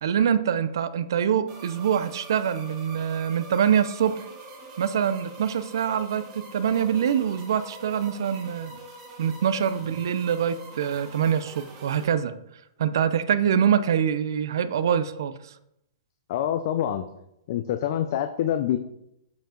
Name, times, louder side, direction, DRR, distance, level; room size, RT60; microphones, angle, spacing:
voice 1, 0.0-4.2 4.8-8.8 9.2-12.3 12.8-15.5, right 8 dB, 75° right, 13 dB, 0.6 m, -24 dB
sound 1, 1.5-12.1, right 2 dB, 30° right, 2.1 m, -44 dB
voice 2, 16.3-17.0 17.5-18.8, left 10 dB, 55° left, 9 dB, 0.5 m, -26 dB
7.3 x 5.3 x 3.8 m, 0.80 s
hypercardioid pair, 145°, 2 cm